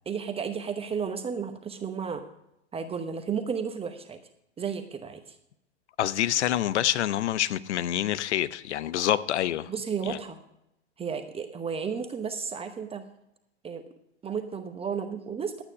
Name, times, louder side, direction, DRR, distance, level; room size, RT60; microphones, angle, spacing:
voice 1, 0.1-2.2 2.7-4.2 4.6-5.4 9.7-10.4 11.0-13.0 13.6-13.8 14.2-15.6, right 6 dB, 15° right, 0.9 m, -33 dB
voice 2, 6.0-9.7 10.1-10.2, left 12 dB, 75° left, 0.7 m, -27 dB
12.0 x 9.0 x 4.7 m
hypercardioid pair, 110°, 34 cm